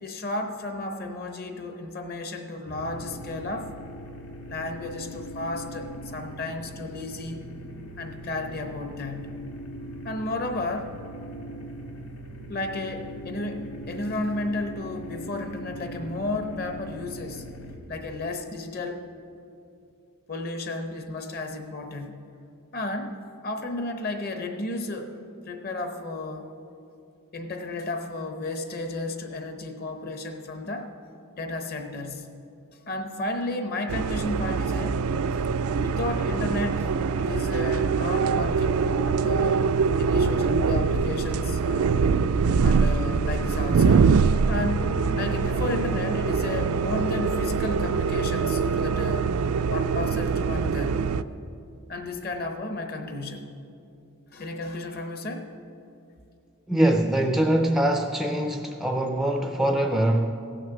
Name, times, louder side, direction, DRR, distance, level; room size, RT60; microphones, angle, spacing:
voice 1, 0.0-3.7 4.5-7.4 8.0-9.4 10.0-11.0 12.5-17.4 17.9-19.0 20.3-22.2 22.7-23.2 23.4-25.1 25.5-26.5 27.3-30.9 31.3-32.3 32.9-35.1 35.3-35.4 35.8-36.9 37.2-39.7 40.0-42.0 42.6-44.1 44.5-49.3 49.7-51.0 51.9-53.5 54.3-55.5, left 2 dB, 45° left, 5 dB, 0.9 m, -33 dB
sound 1, 2.7-17.8, equal, 75° left, 1.5 m, -40 dB
sound 2, 33.9-51.2, right 5 dB, 75° right, 0.4 m, -24 dB
voice 2, 56.7-60.3, right 1 dB, ahead, 4 dB, 0.4 m, -23 dB
16.0 x 6.4 x 6.7 m, 2.6 s
head